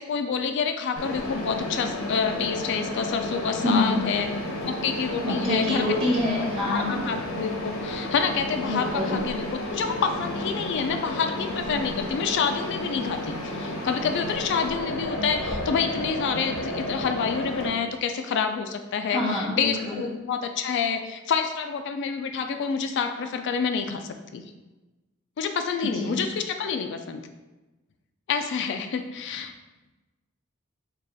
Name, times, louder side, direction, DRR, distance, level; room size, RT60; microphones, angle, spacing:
voice 1, 0.0-4.3 4.7-5.8 6.6-9.4 9.7-24.0 24.3-24.4 25.4-27.2 28.3-29.5, left 6 dB, 60° left, 6 dB, 0.3 m, -28 dB
Mechanisms, 1.0-17.7, left 1 dB, 85° left, 0.8 m, -32 dB
voice 2, 3.6-4.0 5.2-7.1 8.7-9.2 19.1-20.0 26.0-26.2, left 1 dB, 30° right, -5 dB, 1.4 m, -26 dB
4.9 x 2.3 x 4.0 m, 1.1 s
head